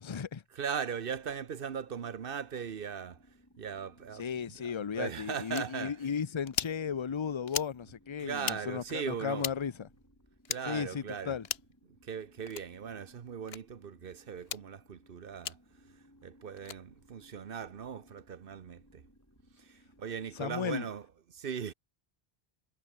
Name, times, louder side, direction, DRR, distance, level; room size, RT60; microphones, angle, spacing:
voice 1, 0.0-0.4 4.2-9.9 10.7-11.5 20.4-20.9, left 7 dB, 35° left, 0.6 m, -35 dB
voice 2, 0.5-6.0 8.2-9.5 10.5-11.4 11.9-19.0 19.6-21.7, right 7 dB, 60° right, 1.1 m, -39 dB
sound 1, 1.1-20.6, equal, 15° left, 5.9 m, -63 dB
sound 2, 5.5-5.7 6.5-6.8 7.5-7.7 8.4-8.6 9.4-9.6 10.4-10.6 11.4-11.7 12.5-12.7 13.5-13.6 14.4-14.6 15.4-15.6 16.6-16.8, left 8 dB, 75° left, 1.1 m, -36 dB
omnidirectional pair, 1.1 m